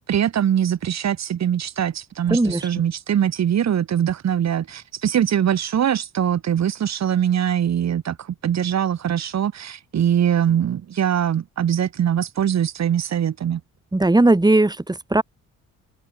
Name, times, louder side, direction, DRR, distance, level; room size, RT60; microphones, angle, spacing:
voice 1, 0.1-8.2 8.4-13.6, right 9 dB, 60° right, 6.1 m, -22 dB
voice 2, 2.3-2.7 13.9-15.2, right 2 dB, 15° right, 7.5 m, -18 dB
open air
cardioid pair, 90°, 30 cm